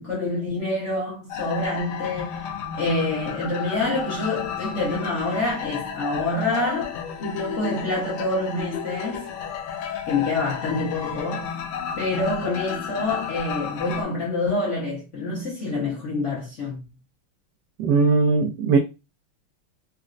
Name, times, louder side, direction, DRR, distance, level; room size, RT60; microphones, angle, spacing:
voice 1, 0.0-2.4 2.7-9.3 10.0-11.5 12.0-16.8, left 2 dB, 45° left, 1.0 m, -27 dB
sound 1, 1.3-14.0, left 7 dB, 85° left, 1.6 m, -32 dB
voice 2, 17.8-18.8, right 4 dB, 80° right, 0.9 m, -19 dB
4.1 x 2.1 x 2.4 m
omnidirectional pair, 2.4 m